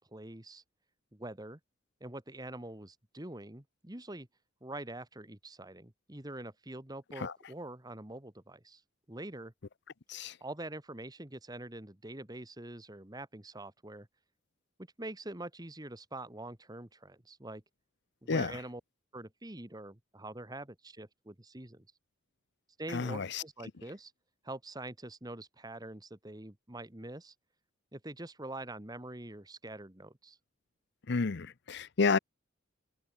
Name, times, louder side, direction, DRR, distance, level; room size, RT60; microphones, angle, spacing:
voice 1, 0.1-0.6 1.1-1.6 2.0-4.3 4.6-8.8 9.1-9.5 10.4-14.1 14.8-17.6 18.2-18.8 19.1-21.8 22.8-24.1 24.4-27.3 27.9-30.4, right 2 dB, 20° right, 1.6 m, -45 dB
voice 2, 22.9-23.4 31.1-32.2, left 4 dB, 60° left, 0.7 m, -30 dB
head